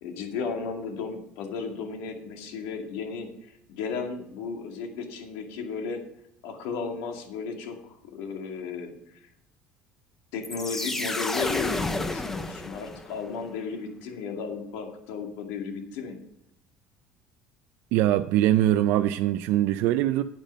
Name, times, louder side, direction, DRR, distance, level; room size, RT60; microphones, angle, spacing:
voice 1, 0.0-6.0 6.4-9.3 10.3-16.2, left 5 dB, 85° left, 2.3 m, -34 dB
sound 1, 10.4-13.2, left 2 dB, 10° left, 0.6 m, -31 dB
voice 2, 17.9-20.2, right 13 dB, 65° right, 0.4 m, -22 dB
9.2 x 9.1 x 5.3 m
cardioid pair, 165°, 4 cm